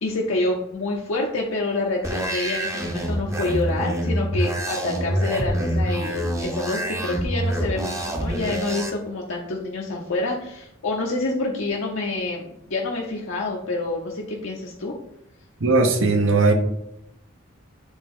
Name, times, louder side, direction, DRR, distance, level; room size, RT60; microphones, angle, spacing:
voice 1, 0.0-14.9, left 2 dB, 70° left, -1 dB, 0.7 m, -27 dB
sound 1, 2.0-8.9, right 1 dB, 15° right, 0.6 m, -26 dB
voice 2, 15.6-16.5, right 3 dB, 75° right, 6 dB, 0.9 m, -18 dB
8.1 x 3.4 x 3.6 m, 0.80 s
head